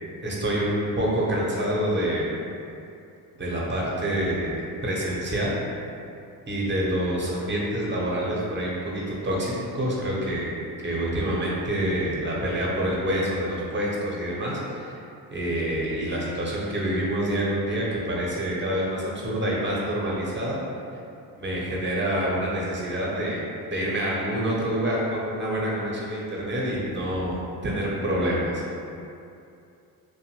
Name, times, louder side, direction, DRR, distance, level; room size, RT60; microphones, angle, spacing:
voice 1, 0.2-2.3 3.4-5.6 6.5-10.6 10.8-14.9 15.3-20.6 21.4-23.4 23.7-28.6, right 1 dB, 25° right, -4 dB, 0.7 m, -27 dB
2.5 x 2.2 x 3.0 m, 2.6 s
hypercardioid pair, 60°, 46 cm